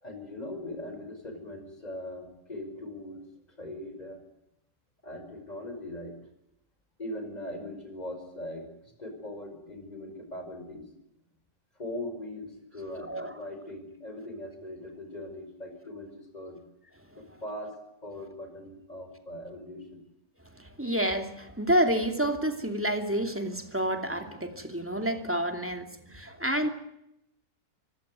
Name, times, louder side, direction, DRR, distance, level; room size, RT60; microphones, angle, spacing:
voice 1, 0.0-3.2 3.6-4.2 5.0-6.1 7.0-8.7 9.0-10.9 11.8-16.6 17.1-17.7 18.0-20.0 26.3-26.4, left 1 dB, 20° left, 6 dB, 5.6 m, -40 dB
voice 2, 12.9-13.3 20.6-26.7, right 1 dB, 5° right, 6 dB, 2.6 m, -29 dB
24.5 x 16.5 x 9.4 m, 0.83 s
omnidirectional pair, 1.9 m